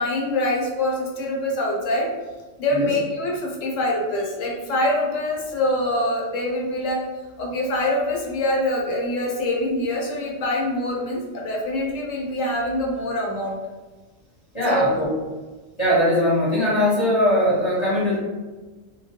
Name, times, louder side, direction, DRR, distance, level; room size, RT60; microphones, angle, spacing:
voice 1, 0.0-2.1 2.6-7.0 7.4-13.6 14.7-14.8, left 1 dB, 75° left, -2 dB, 1.0 m, -24 dB
voice 2, 14.5-15.1 15.8-18.2, equal, 25° left, -10 dB, 0.9 m, -20 dB
2.2 x 2.2 x 2.7 m, 1.3 s
omnidirectional pair, 1.4 m